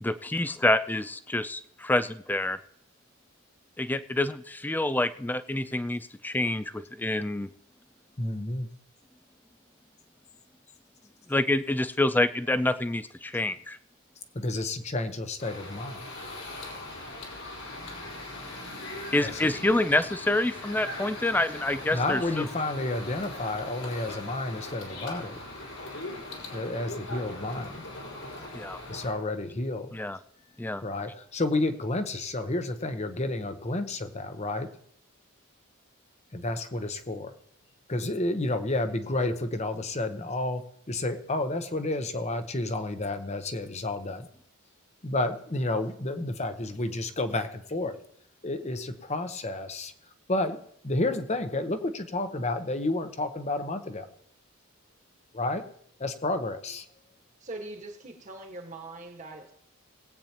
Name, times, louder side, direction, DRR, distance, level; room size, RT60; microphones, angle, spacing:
voice 1, 0.0-2.6 3.8-7.5 11.3-13.8 19.1-22.2 28.5-28.8 29.9-30.2 30.6-30.8, left 1 dB, 10° left, 0.3 m, -27 dB
voice 2, 8.2-8.7 14.3-16.0 19.2-19.4 21.9-25.4 26.5-27.8 28.9-30.0 30.8-34.7 36.3-37.3 37.9-40.6 40.9-44.3 45.0-48.0 48.4-49.9 50.3-50.6 50.8-54.1 55.3-55.6 56.0-56.9, left 2 dB, 30° left, 0.9 m, -30 dB
sound 1, 15.4-29.1, left 1 dB, 85° left, 4.5 m, -40 dB
voice 3, 57.4-59.5, right 2 dB, 35° right, 1.5 m, -41 dB
21.0 x 8.6 x 2.9 m
head